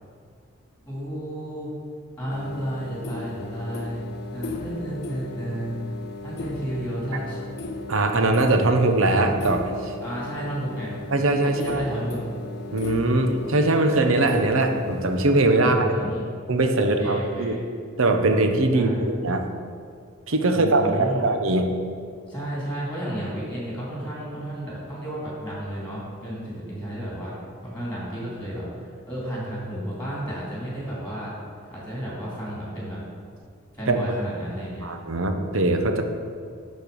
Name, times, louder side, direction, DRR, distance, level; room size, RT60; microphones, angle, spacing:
voice 1, 0.9-1.7 2.2-4.0 4.3-5.7 6.2-7.4 10.0-10.9 11.4-12.2 15.6-16.3 16.8-17.6 18.7-19.1 20.5-21.3 22.3-28.7 29.0-31.3 31.7-33.0 33.7-34.9, right 1 dB, 5° left, -6 dB, 2.8 m, -32 dB
sound 1, 2.3-15.3, left 2 dB, 50° left, 0.6 m, -37 dB
voice 2, 7.9-9.9 11.1-11.8 12.7-16.1 16.5-17.6 18.0-19.4 20.3-21.7 33.9-34.0 34.8-36.0, right 2 dB, 75° right, 5 dB, 0.9 m, -21 dB
10.5 x 4.5 x 6.9 m, 2.2 s
head